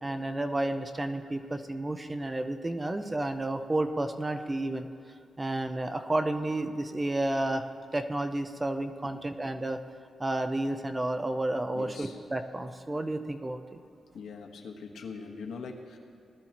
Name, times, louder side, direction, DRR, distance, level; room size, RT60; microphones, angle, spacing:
voice 1, 0.0-4.9 5.4-7.7 7.9-9.8 10.2-13.8, right 1 dB, 15° right, 7 dB, 0.5 m, -31 dB
voice 2, 11.7-12.2 14.1-16.0, left 4 dB, 75° left, 2 dB, 1.3 m, -42 dB
19.0 x 12.0 x 3.0 m, 2.5 s
wide cardioid pair, 140°, 0 cm